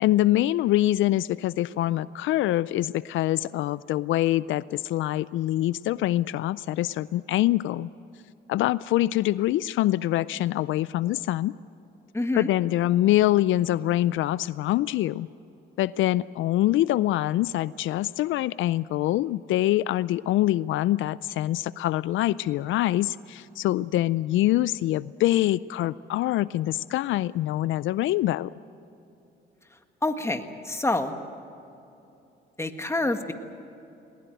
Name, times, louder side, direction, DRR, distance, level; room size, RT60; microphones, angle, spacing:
voice 1, 0.0-7.9 8.5-11.5 12.3-15.3 15.8-28.5, left 15 dB, 75° left, 18 dB, 0.4 m, -24 dB
voice 2, 12.1-12.5 30.0-31.1 32.6-33.3, left 2 dB, 15° left, 6 dB, 1.7 m, -27 dB
20.5 x 20.0 x 9.1 m, 2.9 s
cardioid pair, 90°, 20 cm